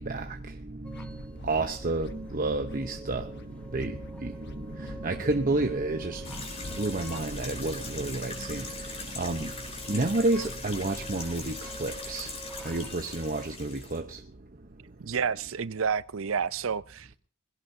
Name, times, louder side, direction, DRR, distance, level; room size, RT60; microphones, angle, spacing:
voice 1, 0.0-14.3, right 2 dB, 40° right, 1.0 m, -31 dB
sound 1, 0.8-6.9, left 1 dB, 55° left, 1.1 m, -46 dB
sound 2, 0.8-13.5, right 2 dB, 5° left, 1.0 m, -47 dB
sound 3, 6.2-14.0, left 3 dB, 30° left, 3.9 m, -41 dB
voice 2, 15.0-17.1, right 6 dB, 70° right, 0.6 m, -30 dB
21.0 x 16.5 x 2.8 m
head